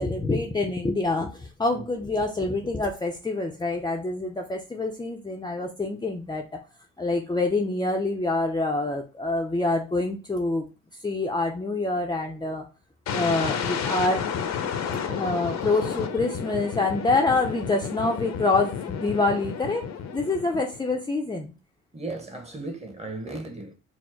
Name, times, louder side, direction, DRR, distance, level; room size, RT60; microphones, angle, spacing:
voice 1, 0.0-6.5 7.0-10.7 11.0-12.7 13.1-14.3 15.1-21.5, left 2 dB, 15° left, 0.5 m, -26 dB
sound 1, 13.1-20.9, left 7 dB, 60° left, 0.7 m, -31 dB
voice 2, 21.9-23.7, right 2 dB, 20° right, 1.1 m, -36 dB
4.4 x 2.0 x 4.4 m
cardioid pair, 90°, 30 cm